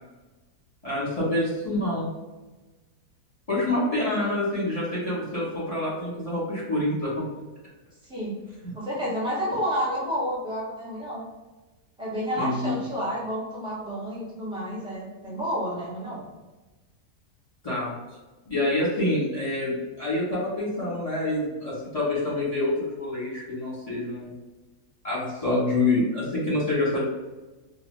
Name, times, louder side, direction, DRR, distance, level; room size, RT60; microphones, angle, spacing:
voice 1, 0.8-2.1 3.5-7.1 12.4-12.8 17.6-17.9 18.4-24.3 25.0-27.0, left 2 dB, 30° left, -7 dB, 0.8 m, -27 dB
voice 2, 4.0-4.4 8.1-8.4 8.7-11.2 12.0-16.2, equal, 5° right, -8 dB, 0.4 m, -30 dB
2.6 x 2.2 x 3.2 m, 1.2 s
omnidirectional pair, 1.7 m